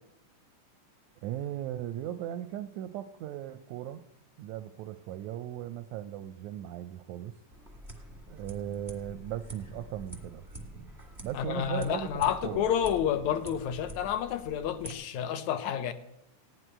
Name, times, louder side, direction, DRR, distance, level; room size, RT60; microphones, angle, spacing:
voice 1, 1.2-4.0 4.4-7.3 8.3-10.4 11.2-12.7, right 11 dB, 80° right, 1.6 m, -37 dB
sound 1, 7.5-14.9, right 1 dB, 15° right, 0.6 m, -47 dB
voice 2, 11.3-15.9, left 9 dB, 75° left, 1.8 m, -30 dB
16.0 x 6.3 x 10.0 m
omnidirectional pair, 3.9 m